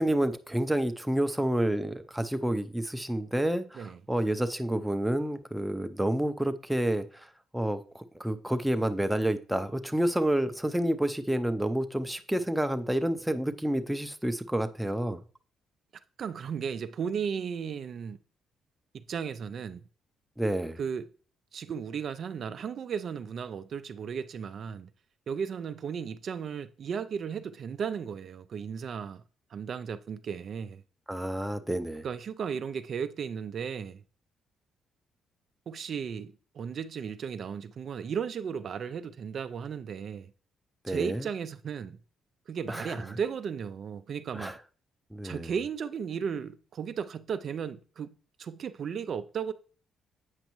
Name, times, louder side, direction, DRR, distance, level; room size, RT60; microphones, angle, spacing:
voice 1, 0.0-15.2 20.4-20.8 31.1-32.1 40.8-41.3 42.7-43.0 44.3-44.6 45.1-45.5, right 1 dB, 5° right, 0.6 m, -29 dB
voice 2, 16.2-18.2 18.9-19.8 20.8-21.1 21.5-24.9 25.3-29.2 29.5-30.8 32.0-34.0 35.7-40.3 40.9-42.0 42.5-44.5 45.2-49.5, right 7 dB, 55° right, 0.4 m, -35 dB
8.1 x 5.2 x 3.0 m
cardioid pair, 90°, 0 cm